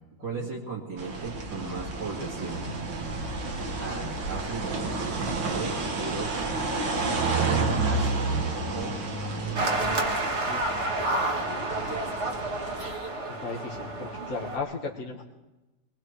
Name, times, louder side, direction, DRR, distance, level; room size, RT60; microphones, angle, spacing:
voice 1, 0.2-2.7 3.8-4.9 5.4-6.6 7.3-8.4 8.7-9.8, right 4 dB, 70° right, -6 dB, 2.8 m, -37 dB
sound 1, 1.0-12.9, right 3 dB, 90° right, 2.4 m, -30 dB
sound 2, 9.6-14.6, right 2 dB, 40° right, 1.6 m, -30 dB
voice 2, 13.4-15.3, left 4 dB, 50° left, -1 dB, 1.9 m, -36 dB
22.0 x 20.0 x 3.2 m, 1.0 s
omnidirectional pair, 1.9 m